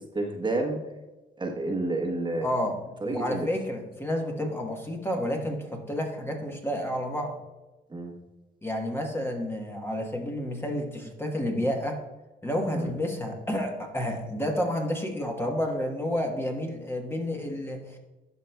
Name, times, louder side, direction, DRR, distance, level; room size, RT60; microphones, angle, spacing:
voice 1, 0.1-0.8 1.4-2.5 3.0-3.5 7.9-8.1 12.7-12.9, right 2 dB, 25° right, 1 dB, 1.1 m, -29 dB
voice 2, 2.4-2.8 3.0-7.4 8.6-12.0 12.4-18.0, left 1 dB, 10° left, 2 dB, 1.1 m, -30 dB
11.5 x 5.0 x 2.3 m, 1.1 s
cardioid pair, 90°, 20 cm